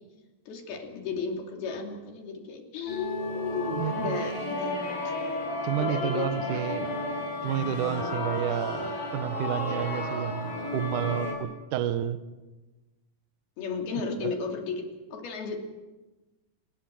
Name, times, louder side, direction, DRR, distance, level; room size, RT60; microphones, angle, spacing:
voice 1, 0.5-5.1 5.8-6.9 13.6-15.6, left 5 dB, 80° left, 2 dB, 4.8 m, -34 dB
sound 1, 2.9-11.3, left 1 dB, 65° left, 8.9 m, -32 dB
voice 2, 3.7-4.2 5.6-7.0 7.4-12.2 14.2-14.3, right 10 dB, 65° right, 11 dB, 2.4 m, -30 dB
28.0 x 20.5 x 7.8 m, 1.1 s
omnidirectional pair, 4.3 m